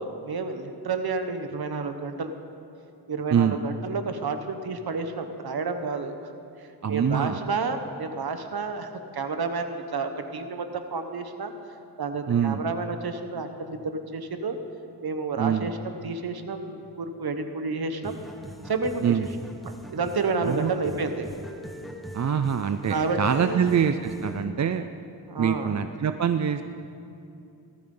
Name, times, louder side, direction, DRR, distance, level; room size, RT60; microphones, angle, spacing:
voice 1, 0.0-2.3 3.1-6.3 6.6-10.7 10.9-11.5 12.0-14.6 15.0-18.2 18.6-19.0 19.6-21.3 22.9-23.7 25.3-25.8, right 4 dB, 60° right, 7 dB, 1.2 m, -30 dB
voice 2, 6.8-7.4 12.3-12.6 15.4-15.7 19.0-19.3 20.4-20.7 22.1-24.9 25.4-26.6, right 8 dB, 45° right, 9 dB, 0.5 m, -24 dB
sound 1, 18.0-24.4, equal, ahead, 1.3 m, -42 dB
18.0 x 14.0 x 3.9 m, 2.7 s
wide cardioid pair, 85°, 42 cm